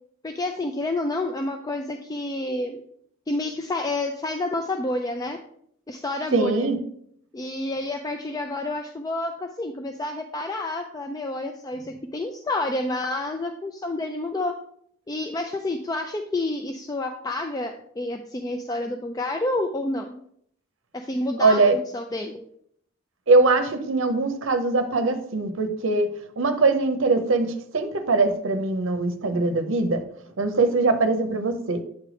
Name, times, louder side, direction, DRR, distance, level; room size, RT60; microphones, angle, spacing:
voice 1, 0.2-2.8 3.3-5.4 5.9-6.7 7.3-14.5 15.1-20.2 20.9-22.4, left 2 dB, 15° left, 5 dB, 0.3 m, -29 dB
voice 2, 6.3-6.8 21.4-21.8 23.3-26.1 26.4-30.0 30.4-31.8, right 3 dB, 65° right, 7 dB, 0.7 m, -21 dB
8.3 x 3.3 x 5.0 m, 0.68 s
head